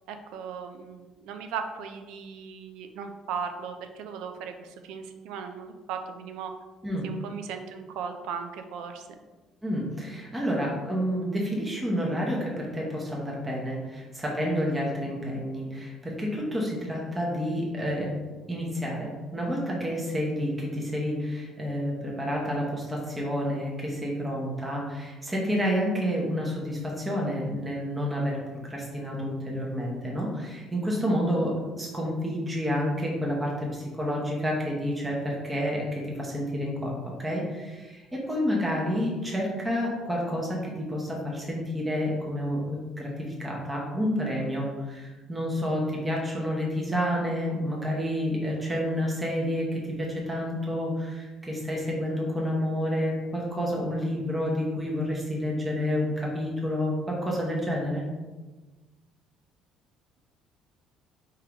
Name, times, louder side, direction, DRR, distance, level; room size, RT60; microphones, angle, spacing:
voice 1, 0.1-6.5 7.0-9.2, right 6 dB, 85° right, 6 dB, 0.5 m, -37 dB
voice 2, 9.6-18.1 18.5-28.4 28.6-58.0, equal, 10° right, -3 dB, 0.7 m, -29 dB
4.5 x 3.7 x 2.9 m, 1.2 s
cardioid pair, 170°, 0 cm